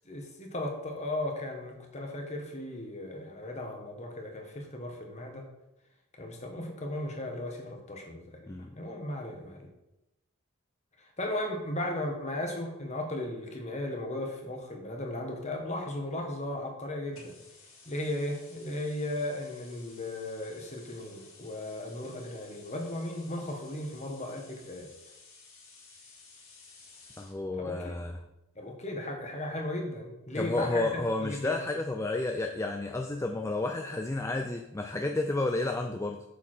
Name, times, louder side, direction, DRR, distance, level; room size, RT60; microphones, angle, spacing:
voice 1, 0.0-5.4 6.2-8.2 8.7-9.7 11.0-17.4 17.8-24.9 27.6-28.0 28.5-31.6, left 1 dB, 30° left, 2 dB, 1.5 m, -36 dB
sound 1, 17.1-27.4, left 4 dB, 75° left, 2.7 m, -55 dB
voice 2, 27.2-28.2 30.3-36.2, left 2 dB, 15° left, 4 dB, 0.4 m, -31 dB
7.1 x 6.9 x 4.5 m, 0.93 s
head